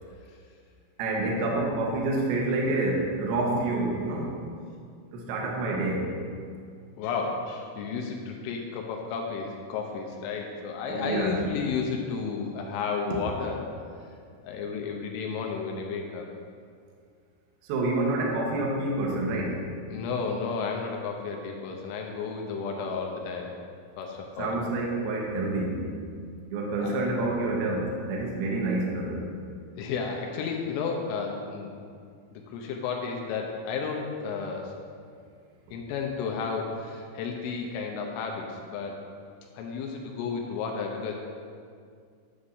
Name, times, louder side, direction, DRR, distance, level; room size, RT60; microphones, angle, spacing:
voice 1, 1.0-4.3 5.1-6.1 10.9-11.4 17.7-19.6 24.4-25.9 26.5-29.2, right 2 dB, 75° right, -2 dB, 2.4 m, -28 dB
voice 2, 7.0-13.7 14.4-16.3 19.9-23.5 24.0-24.6 26.8-27.1 29.8-31.8 32.3-34.8 35.7-39.0 39.5-41.1, left 5 dB, 80° left, 1 dB, 3.0 m, -32 dB
9.7 x 8.5 x 2.6 m, 2.2 s
omnidirectional pair, 5.9 m